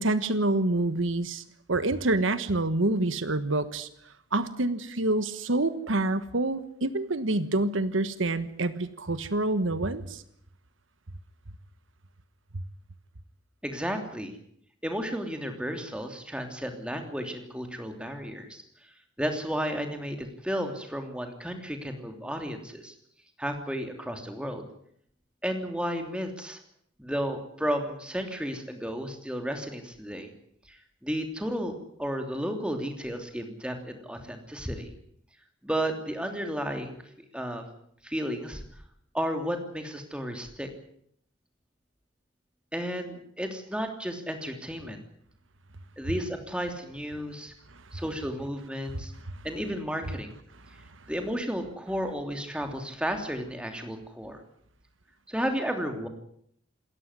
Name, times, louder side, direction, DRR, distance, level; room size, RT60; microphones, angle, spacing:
voice 1, 0.0-1.4 1.7-3.9 4.3-10.2 48.9-49.0, right 2 dB, 80° right, 12 dB, 1.4 m, -27 dB
voice 2, 13.6-14.4 14.8-18.6 19.2-22.9 23.4-24.6 25.4-26.6 27.0-30.3 30.7-34.9 35.6-37.0 37.3-37.6 38.0-38.6 39.1-40.7 42.7-45.0 46.0-47.5 47.9-49.1 49.4-50.3 51.1-54.4 55.3-56.1, equal, 5° right, 5 dB, 3.0 m, -33 dB
27.5 x 14.0 x 9.8 m, 0.68 s
head